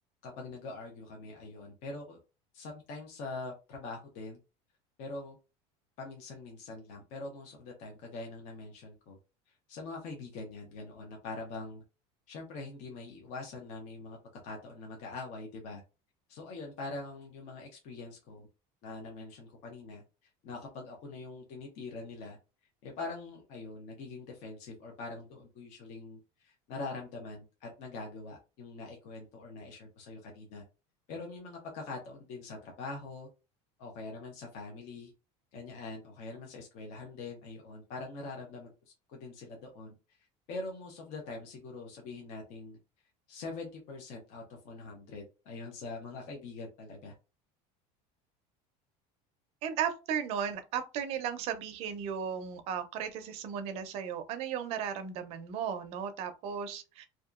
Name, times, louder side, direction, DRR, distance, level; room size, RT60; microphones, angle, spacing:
voice 1, 0.2-2.2 2.5-4.4 5.0-5.4 6.0-9.2 9.7-11.8 12.3-14.2 14.4-15.8 16.3-18.5 18.8-20.0 20.4-22.4 22.8-30.6 31.1-33.3 33.8-35.1 35.5-38.7 39.1-40.2 40.5-42.8 43.3-47.1, left 3 dB, 50° left, 0.7 m, -43 dB
voice 2, 49.6-57.1, right 8 dB, 45° right, 0.5 m, -35 dB
2.7 x 2.3 x 2.4 m
cardioid pair, 165°, 14 cm